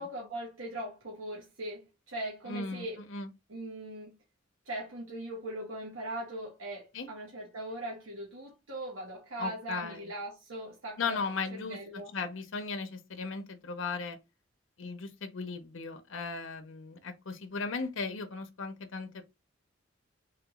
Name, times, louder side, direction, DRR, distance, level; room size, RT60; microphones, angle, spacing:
voice 1, 0.0-3.0 3.5-4.2 4.7-11.2 11.6-12.1, right 1 dB, 85° right, 1.1 m, -40 dB
voice 2, 2.5-3.3 6.9-7.1 9.4-10.1 11.0-11.8 12.1-14.2 14.8-19.2, left 4 dB, 70° left, 0.7 m, -37 dB
3.4 x 2.9 x 3.5 m
head